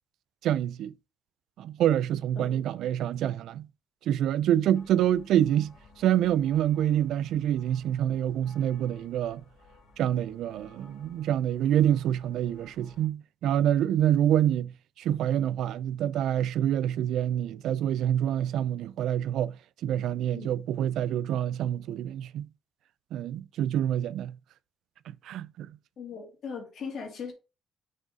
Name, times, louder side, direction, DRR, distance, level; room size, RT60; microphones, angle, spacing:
voice 1, 0.4-0.9 1.6-3.7 4.1-9.4 10.0-19.6 19.8-22.5 23.1-24.4 25.2-25.7, right 11 dB, 80° right, 0.3 m, -26 dB
sound 1, 4.7-13.1, left 3 dB, 85° left, 2.0 m, -56 dB
voice 2, 26.0-27.3, left 6 dB, 65° left, 2.4 m, -39 dB
6.4 x 3.6 x 5.1 m
cardioid pair, 90°, 0 cm